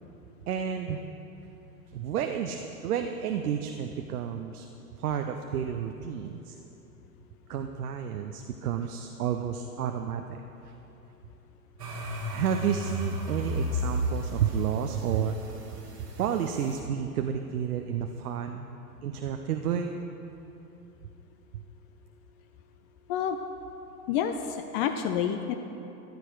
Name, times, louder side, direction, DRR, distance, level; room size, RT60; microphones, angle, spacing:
voice 1, 0.5-1.0 1.9-4.7 5.0-6.6 7.5-10.4 12.3-15.4 16.2-18.7 19.0-20.0 21.5-21.6, right 8 dB, 70° right, 5 dB, 0.8 m, -31 dB
sound 1, 11.8-16.7, equal, 85° right, 2.2 m, -33 dB
voice 2, 24.1-25.5, left 8 dB, 35° left, 7 dB, 0.6 m, -28 dB
14.0 x 9.6 x 4.6 m, 3.0 s
hypercardioid pair, 100°, 47 cm